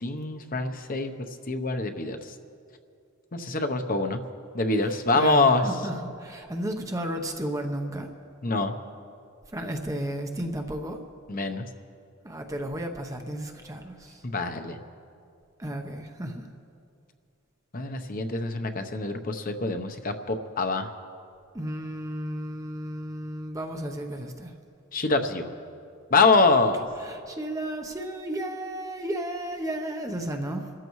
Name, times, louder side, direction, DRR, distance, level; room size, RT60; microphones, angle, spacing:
voice 1, 0.0-2.3 3.3-4.2 4.5-5.6 8.4-8.7 11.3-11.6 14.2-14.8 17.7-20.9 24.9-25.5 26.1-26.8, left 3 dB, 40° left, 7 dB, 0.8 m, -25 dB
voice 2, 4.9-8.1 9.5-11.0 12.2-14.2 15.6-16.5 21.5-24.5 27.0-30.7, right 1 dB, 15° right, 4 dB, 0.8 m, -33 dB
27.0 x 13.5 x 3.1 m, 2.4 s
head